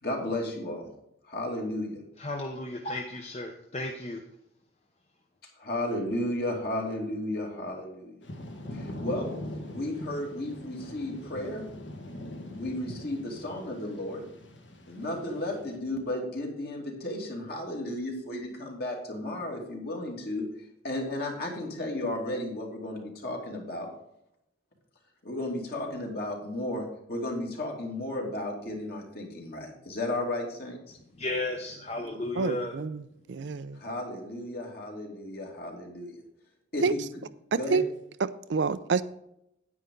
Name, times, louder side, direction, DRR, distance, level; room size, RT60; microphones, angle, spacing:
voice 1, 0.0-0.9 1.3-2.0 5.6-8.2 8.7-9.3 9.7-11.6 12.5-14.2 14.9-20.4 20.8-23.9 25.2-31.0 33.7-36.2 36.7-37.0 37.6-37.8, left 1 dB, 55° left, 2.5 m, -34 dB
voice 2, 2.2-4.2 31.1-32.7, left 2 dB, 35° left, 0.8 m, -34 dB
Thunder / Rain, 8.2-15.8, left 1 dB, 70° left, 1.7 m, -42 dB
voice 3, 32.4-33.0 33.3-33.8 36.8-36.9 37.5-37.8 38.2-39.0, right 5 dB, 70° right, 0.5 m, -28 dB
9.7 x 9.2 x 3.8 m
head